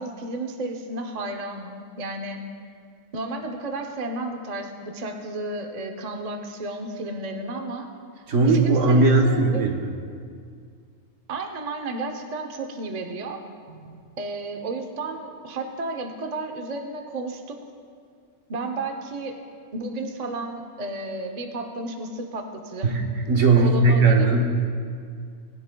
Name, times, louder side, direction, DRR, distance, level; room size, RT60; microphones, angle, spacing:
voice 1, 0.0-2.4 3.1-7.9 8.4-9.6 11.3-13.4 14.2-17.6 18.5-19.3 19.7-23.0 23.6-24.4, right 2 dB, 35° right, 4 dB, 0.7 m, -32 dB
voice 2, 8.3-9.8 13.7-14.1 22.8-23.0 23.3-24.5, right 3 dB, 60° right, 2 dB, 1.3 m, -18 dB
19.0 x 10.5 x 2.2 m, 2.2 s
omnidirectional pair, 1.5 m